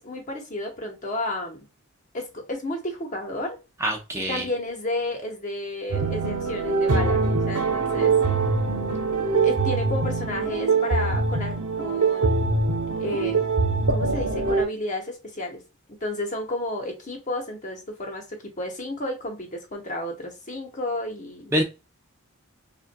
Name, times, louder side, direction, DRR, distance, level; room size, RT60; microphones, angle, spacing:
voice 1, 0.0-1.6 2.1-3.6 4.3-8.1 9.4-12.6 13.0-13.4 13.9-15.6 16.0-21.5, left 1 dB, 35° left, 1.0 m, -32 dB
voice 2, 3.8-4.4 21.5-21.6, right 1 dB, 10° right, 0.6 m, -24 dB
sound 1, 5.9-14.6, right 4 dB, 90° right, 0.9 m, -23 dB
5.5 x 2.5 x 2.2 m
head